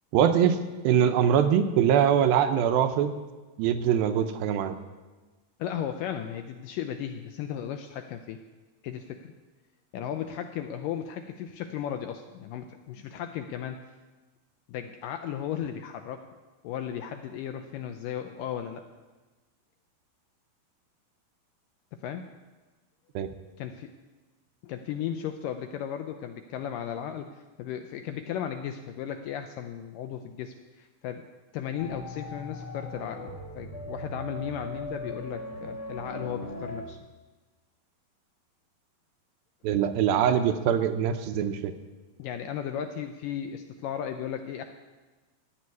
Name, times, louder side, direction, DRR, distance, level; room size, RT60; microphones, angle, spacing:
voice 1, 0.1-3.1 3.6-4.8 23.2-23.3 39.6-41.7, right 9 dB, 80° right, 8 dB, 2.4 m, -23 dB
voice 2, 5.6-8.4 8.8-9.3 9.9-13.8 14.7-16.2 16.6-18.8 22.0-22.3 23.6-23.9 24.6-31.3 31.5-37.0 42.2-44.7, left 9 dB, 80° left, 7 dB, 2.0 m, -35 dB
sound 1, 31.8-36.9, left 1 dB, 50° left, 2.6 m, -39 dB
16.0 x 6.3 x 9.5 m, 1.3 s
omnidirectional pair, 4.4 m